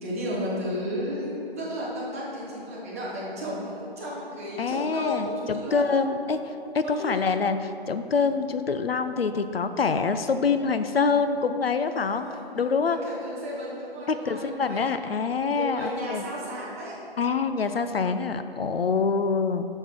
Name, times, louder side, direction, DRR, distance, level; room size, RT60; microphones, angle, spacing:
voice 1, 0.0-5.9 6.8-7.2 11.9-12.4 12.9-14.8 15.5-16.9, equal, 15° right, -7 dB, 1.2 m, -33 dB
voice 2, 4.6-12.3 12.5-13.0 14.1-16.2 17.2-19.7, left 5 dB, 70° left, 10 dB, 0.6 m, -25 dB
8.8 x 6.7 x 4.5 m, 2.8 s
figure-of-eight pair, 165°, 30 cm